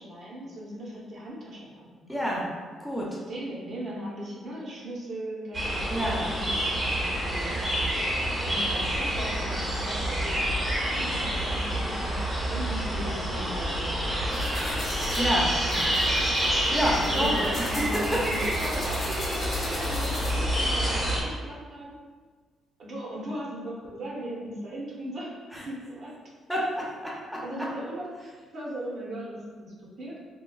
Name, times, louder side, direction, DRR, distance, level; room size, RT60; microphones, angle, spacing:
voice 1, 0.0-1.8 3.3-7.9 8.4-10.5 10.8-14.3 15.6-16.2 17.0-21.9 22.8-25.3 25.7-26.1 27.4-30.2, right 1 dB, 60° right, -5 dB, 0.8 m, -38 dB
voice 2, 2.1-2.5 2.8-3.1 5.9-6.3 15.2-15.5 16.7-17.4 25.5-25.6 26.5-27.4, equal, 5° left, -5 dB, 0.8 m, -28 dB
sound 1, 5.5-21.2, equal, 25° right, 0.9 m, -28 dB
sound 2, 14.3-20.6, left 1 dB, 45° left, 0.8 m, -40 dB
3.6 x 2.3 x 2.3 m, 1.5 s
cardioid pair, 90°, 0 cm